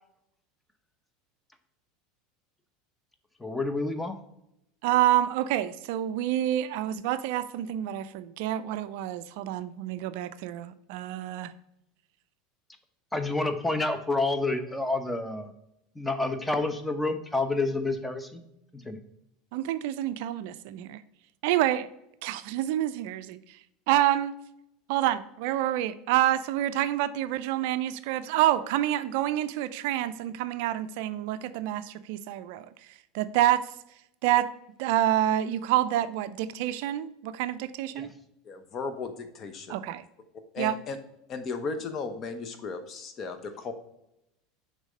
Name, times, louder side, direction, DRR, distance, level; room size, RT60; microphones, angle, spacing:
voice 1, 3.4-4.2 13.1-15.5 15.9-18.4 18.7-19.0 37.9-38.1, left 2 dB, 10° left, 9 dB, 0.8 m, -29 dB
voice 2, 4.8-11.5 19.5-21.0 21.4-21.9 22.2-23.4 23.9-24.4 24.9-32.7 33.1-33.7 34.2-34.5 34.8-38.1 39.7-40.0 40.6-40.7, right 13 dB, 65° right, 14 dB, 0.3 m, -27 dB
voice 3, 38.4-39.8 40.5-41.0 41.3-43.7, left 4 dB, 40° left, 8 dB, 0.9 m, -35 dB
6.3 x 3.7 x 5.0 m, 0.83 s
hypercardioid pair, 80°, 0 cm